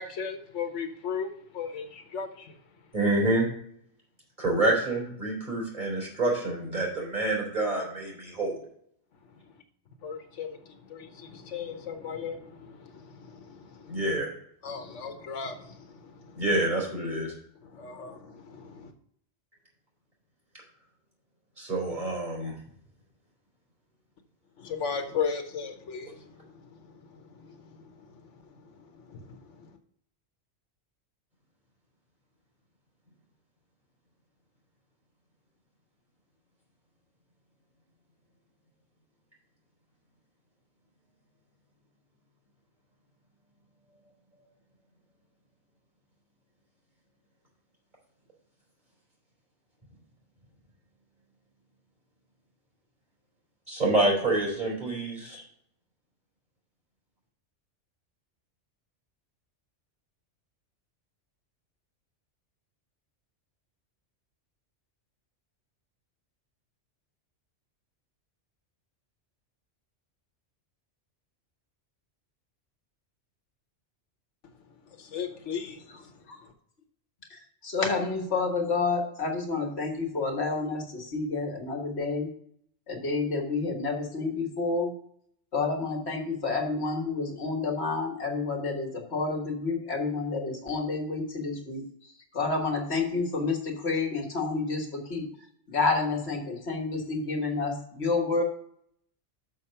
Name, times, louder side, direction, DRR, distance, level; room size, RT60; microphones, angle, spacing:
voice 1, 0.0-2.6 10.0-14.0 14.6-16.4 17.6-18.9 24.6-26.6 27.1-28.2 28.6-28.7 28.9-29.7 75.0-76.1, left 6 dB, 85° left, 1.3 m, -37 dB
voice 2, 2.9-3.5 4.4-8.5 13.9-14.3 16.4-17.3 21.6-22.5 53.7-55.4, right 2 dB, 40° right, 4.0 m, -27 dB
voice 3, 77.3-82.3 82.9-84.9 85.5-91.8 92.3-95.3 95.7-98.4, left 4 dB, 65° left, 1.7 m, -29 dB
6.5 x 6.3 x 5.5 m
omnidirectional pair, 1.2 m